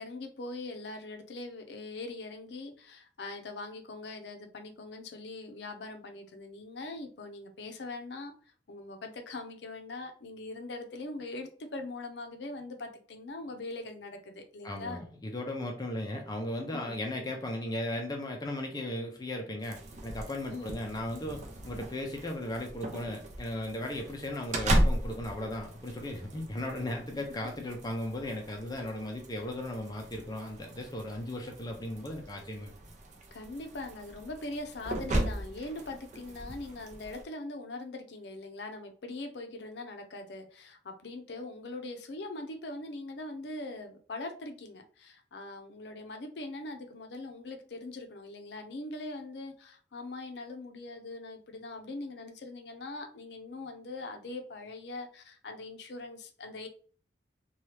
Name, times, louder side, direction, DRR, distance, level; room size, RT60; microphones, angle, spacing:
voice 1, 0.0-8.3 8.7-15.0 16.7-17.0 20.5-20.7 33.3-56.7, left 2 dB, 70° left, 5 dB, 0.5 m, -42 dB
voice 2, 14.6-32.7, left 1 dB, 20° left, 2 dB, 0.5 m, -36 dB
sound 1, 19.6-37.2, right 1 dB, 40° right, 0.5 m, -36 dB
2.8 x 2.3 x 3.2 m, 0.43 s
head